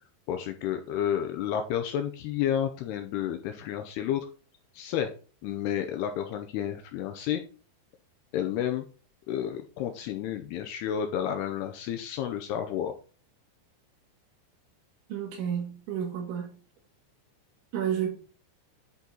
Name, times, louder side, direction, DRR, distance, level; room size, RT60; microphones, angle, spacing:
voice 1, 0.3-4.3 4.7-5.1 5.4-7.4 8.3-8.8 9.3-13.0, left 10 dB, 85° left, 2.4 m, -31 dB
voice 2, 15.1-16.5 17.7-18.1, right 9 dB, 80° right, 4.5 m, -31 dB
11.0 x 4.0 x 4.3 m
omnidirectional pair, 5.3 m